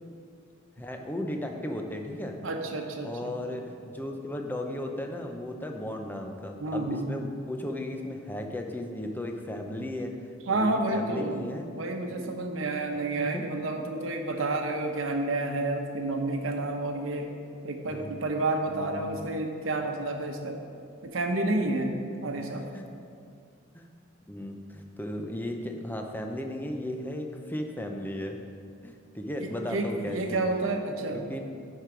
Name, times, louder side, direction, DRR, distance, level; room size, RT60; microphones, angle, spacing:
voice 1, 0.8-2.4 3.0-10.1 10.5-11.7 12.2-12.3 13.2-13.4 17.9-18.1 18.7-19.1 22.4-22.8 23.7-23.9 24.3-28.4 28.8-30.4 31.1-31.4, left 1 dB, 10° left, 3 dB, 0.6 m, -35 dB
voice 2, 2.4-3.3 6.6-7.1 10.5-11.4 11.8-17.3 17.6-20.6 21.0-22.0 22.2-22.6 29.4-31.2, right 2 dB, 80° right, 3 dB, 0.9 m, -30 dB
10.5 x 4.7 x 5.1 m, 2.4 s
head